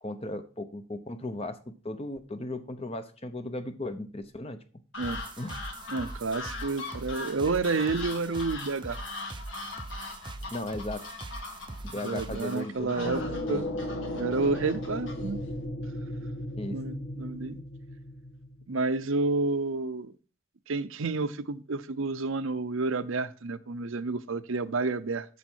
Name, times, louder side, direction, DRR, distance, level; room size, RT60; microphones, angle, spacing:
voice 1, 0.0-4.6 5.4-5.6 10.5-11.0 11.8-13.1 13.5-13.7 16.6-16.8, left 1 dB, 25° left, 9 dB, 0.8 m, -36 dB
sound 1, 4.9-15.7, left 3 dB, 60° left, 2.1 m, -42 dB
sound 2, 5.0-12.6, right 2 dB, 20° right, 0.5 m, -42 dB
voice 2, 5.9-9.0 12.0-13.2 13.5-13.7 14.2-15.4 16.7-17.6 18.7-20.2 20.7-25.3, right 3 dB, 65° right, 13 dB, 0.7 m, -30 dB
sound 3, 13.0-18.8, left 1 dB, 80° left, 1.4 m, -36 dB
8.4 x 7.2 x 4.5 m, 0.37 s
head